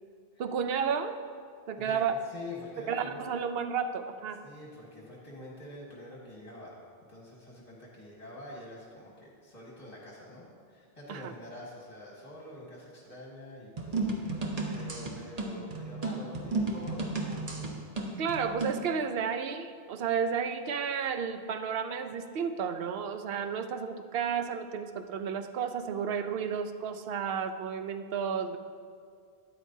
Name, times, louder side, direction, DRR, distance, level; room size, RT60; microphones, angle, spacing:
voice 1, 0.4-1.2 1.7-2.1 2.9-4.4 11.1-11.3 18.2-28.6, right 7 dB, 75° right, 8 dB, 0.8 m, -32 dB
voice 2, 1.8-3.4 4.4-6.7 7.1-14.1 14.7-17.7, left 1 dB, 35° left, -5 dB, 1.7 m, -46 dB
sound 1, 13.8-18.8, right 3 dB, 40° right, 1.0 m, -33 dB
12.5 x 9.4 x 2.7 m, 2.2 s
omnidirectional pair, 1.0 m